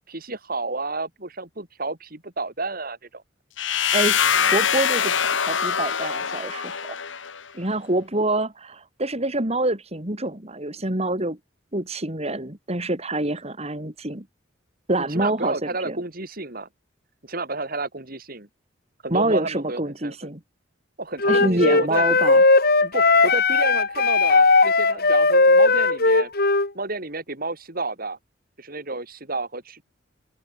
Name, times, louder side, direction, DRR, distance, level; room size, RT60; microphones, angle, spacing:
voice 1, 0.1-3.2 15.0-16.7 17.2-18.5 19.0-20.3 21.0-22.0 22.8-26.3 26.7-28.2 28.6-29.8, right 3 dB, 50° right, 4.0 m, -31 dB
sound 1, 3.6-7.4, left 7 dB, 75° left, 1.8 m, -23 dB
voice 2, 4.4-6.8 7.5-11.4 11.7-14.2 14.9-16.0 19.1-20.4 21.3-22.4, right 2 dB, 35° right, 3.6 m, -26 dB
Wind instrument woodwind instrument, 21.2-26.7, left 3 dB, 55° left, 4.0 m, -17 dB
open air
head